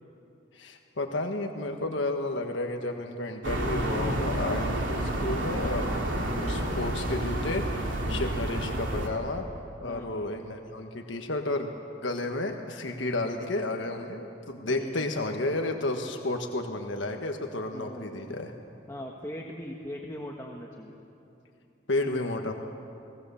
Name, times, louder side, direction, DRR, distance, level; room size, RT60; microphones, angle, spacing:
voice 1, 0.5-6.0 6.4-9.4 9.8-11.7 12.0-18.5 21.9-22.5, left 2 dB, 85° left, 3 dB, 1.5 m, -32 dB
sound 1, 3.4-9.1, right 1 dB, 90° right, 3.0 m, -30 dB
voice 2, 9.8-10.2 14.7-15.1 17.7-18.4 18.9-21.0, left 1 dB, 15° left, 0 dB, 1.3 m, -40 dB
30.0 x 19.0 x 7.0 m, 2.7 s
head